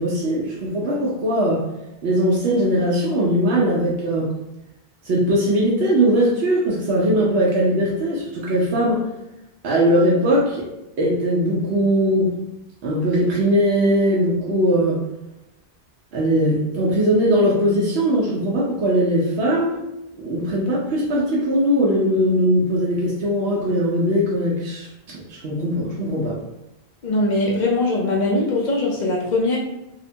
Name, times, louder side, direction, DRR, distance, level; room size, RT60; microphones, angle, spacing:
voice 1, 0.0-1.6 2.0-4.3 5.0-9.0 9.6-10.6 11.0-12.3 12.8-15.0 16.1-19.8 20.2-26.4, equal, 80° right, -5 dB, 0.9 m, -20 dB
voice 2, 27.0-29.6, left 2 dB, 55° left, -2 dB, 0.5 m, -21 dB
2.8 x 2.1 x 2.6 m, 0.92 s
omnidirectional pair, 1.1 m